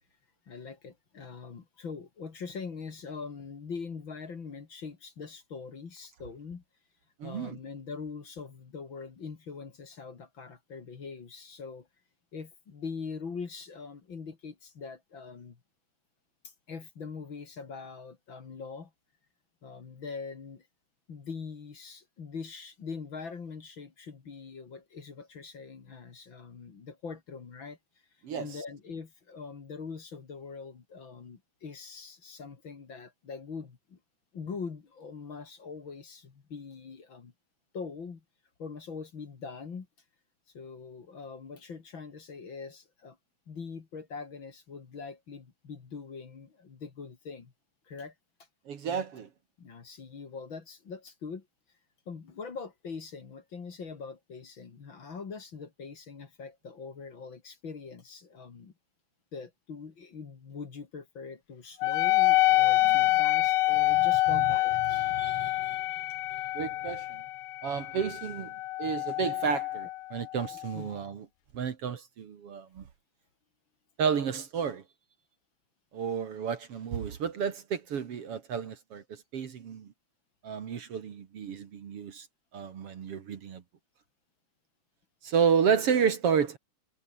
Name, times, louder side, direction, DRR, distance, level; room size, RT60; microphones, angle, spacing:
voice 1, 0.5-6.6 7.2-11.9 12.3-15.6 16.4-18.9 19.6-20.7 21.1-27.8 28.4-34.0 34.3-37.3 37.7-38.2 38.6-39.9 40.5-43.2 43.5-47.5 47.9-48.1 49.6-51.5 52.1-58.7 59.3-65.0 70.7-71.0, left 5 dB, 45° left, 2.8 m, -42 dB
voice 2, 7.2-7.6 28.2-28.5 48.7-49.3 64.0-64.4 65.1-65.8 66.5-67.2 67.6-68.5 68.8-71.3 71.5-72.8 74.0-74.8 75.9-79.0 79.3-79.9 80.4-82.3 82.5-83.6 85.2-86.6, right 7 dB, 55° right, 2.5 m, -31 dB
Wind instrument woodwind instrument, 61.8-70.7, left 17 dB, 85° left, 2.1 m, -27 dB
omnidirectional pair, 3.3 m